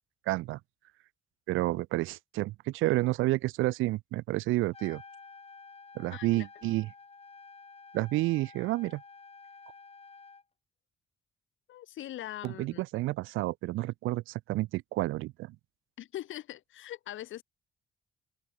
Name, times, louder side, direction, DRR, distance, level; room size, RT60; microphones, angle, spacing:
voice 1, 0.3-0.6 1.5-5.0 6.0-6.9 7.9-9.0 12.4-15.5, right 18 dB, 80° right, 0.4 m, -30 dB
Trumpet, 4.6-10.4, left 4 dB, 30° left, 5.8 m, -51 dB
voice 2, 6.1-6.5 11.7-12.8 16.0-17.4, left 13 dB, 80° left, 2.4 m, -41 dB
open air
cardioid pair, 90°, 20 cm